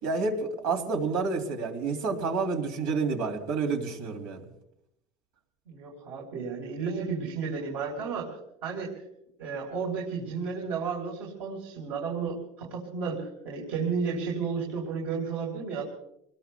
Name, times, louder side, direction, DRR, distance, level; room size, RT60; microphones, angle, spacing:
voice 1, 0.0-4.4, right 4 dB, 85° right, 4 dB, 2.9 m, -29 dB
voice 2, 5.7-8.9 9.4-15.8, right 5 dB, 70° right, -1 dB, 4.0 m, -33 dB
28.0 x 20.5 x 2.3 m, 0.77 s
supercardioid pair, 130°, 10 cm